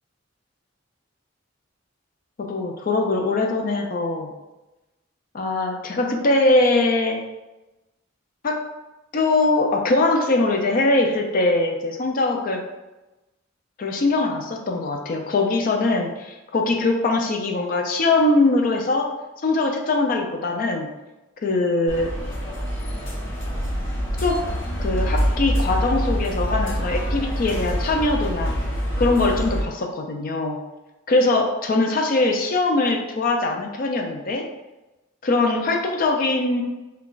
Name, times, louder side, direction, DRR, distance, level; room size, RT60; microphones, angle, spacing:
voice 1, 2.4-4.3 5.3-7.2 8.4-8.6 9.1-12.6 13.8-19.1 19.4-20.9 21.4-22.1 24.2-24.4 24.8-28.6 29.0-30.6 31.1-34.5 35.2-36.6, left 2 dB, 45° left, 3 dB, 0.4 m, -22 dB
sound 1, 21.9-29.6, equal, 70° left, 0.7 m, -25 dB
2.4 x 2.2 x 3.7 m, 1.1 s
head